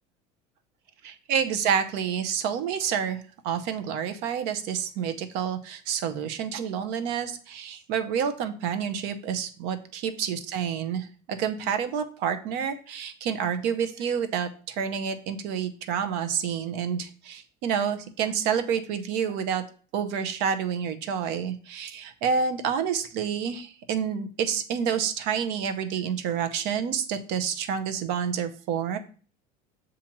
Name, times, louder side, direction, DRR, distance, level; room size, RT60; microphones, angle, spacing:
voice 1, 1.0-19.6 19.9-29.0, right 7 dB, 70° right, 9 dB, 0.6 m, -29 dB
7.1 x 2.5 x 3.0 m, 0.40 s
supercardioid pair, 120°, 18 cm